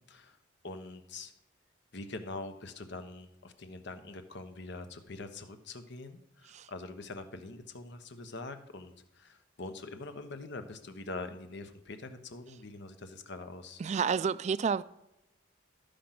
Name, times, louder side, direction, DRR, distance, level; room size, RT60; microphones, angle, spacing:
voice 1, 0.6-1.3 1.9-13.8, left 2 dB, 65° left, 1.1 m, -44 dB
voice 2, 13.8-14.8, right 6 dB, 35° right, 0.3 m, -30 dB
13.0 x 5.1 x 5.9 m
head